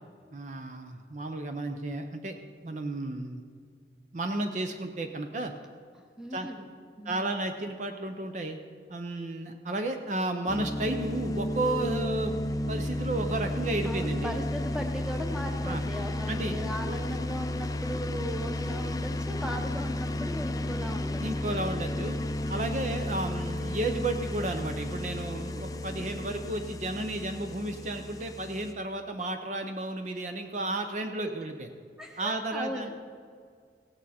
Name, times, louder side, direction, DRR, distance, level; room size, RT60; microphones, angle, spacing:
voice 1, 0.3-2.3 2.6-3.4 4.1-5.5 6.3-6.5 7.0-8.6 8.9-14.4 15.6-15.8 16.3-16.6 16.9-17.0 21.2-22.2 22.5-31.7 32.2-32.9, right 2 dB, 45° right, 6 dB, 0.6 m, -33 dB
voice 2, 6.2-6.7 7.0-7.2 13.8-21.5 32.0-32.9, equal, 5° right, 3 dB, 1.0 m, -38 dB
sound 1, 10.5-28.7, left 1 dB, 20° left, 0.5 m, -33 dB
16.0 x 8.8 x 4.2 m, 2.1 s
head